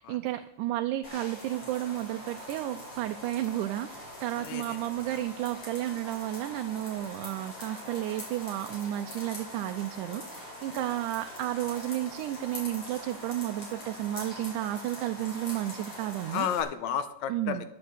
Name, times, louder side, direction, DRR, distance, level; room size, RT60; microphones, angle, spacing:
voice 1, 0.0-16.5 17.3-17.6, right 14 dB, 85° right, 7 dB, 2.1 m, -32 dB
sound 1, 1.0-16.6, left 1 dB, 50° left, 5.9 m, -43 dB
voice 2, 4.3-4.8 5.1-5.2 16.3-17.7, left 8 dB, 75° left, 10 dB, 1.9 m, -32 dB
11.0 x 8.4 x 7.9 m, 0.82 s
omnidirectional pair, 3.6 m